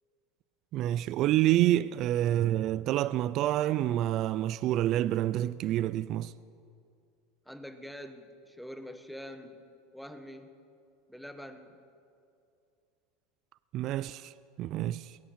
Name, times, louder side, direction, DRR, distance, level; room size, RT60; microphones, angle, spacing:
voice 1, 0.7-6.3 13.7-14.3 14.6-15.2, right 13 dB, 50° right, 0.4 m, -28 dB
voice 2, 7.5-9.6 9.9-10.5 11.1-11.8, equal, ahead, 1.2 m, -45 dB
21.0 x 7.3 x 8.8 m
supercardioid pair, 105°, 0 cm